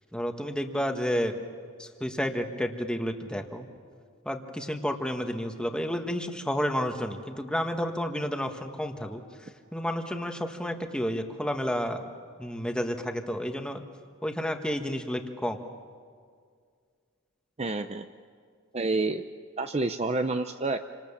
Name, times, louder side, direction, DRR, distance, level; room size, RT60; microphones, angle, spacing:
voice 1, 0.1-1.4 1.8-3.7 4.2-9.2 9.7-12.0 12.4-13.8 14.2-15.6, equal, 5° left, 4 dB, 1.5 m, -31 dB
voice 2, 17.6-18.1 18.7-19.2 19.6-20.8, right 3 dB, 30° right, 8 dB, 0.6 m, -28 dB
29.0 x 26.0 x 7.3 m, 2.1 s
head